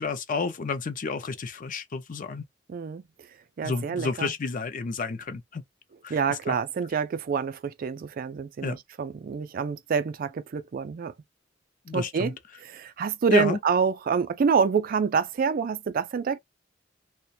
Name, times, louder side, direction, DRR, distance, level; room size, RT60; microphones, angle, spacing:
voice 1, 0.0-2.4 3.6-5.6 6.0-6.6 8.6-8.8 11.9-12.3 13.3-13.6, left 4 dB, 45° left, 0.5 m, -30 dB
voice 2, 2.7-3.0 3.6-4.3 6.1-11.1 11.9-12.3 12.6-16.4, right 6 dB, 50° right, 0.3 m, -27 dB
2.4 x 2.1 x 2.6 m
head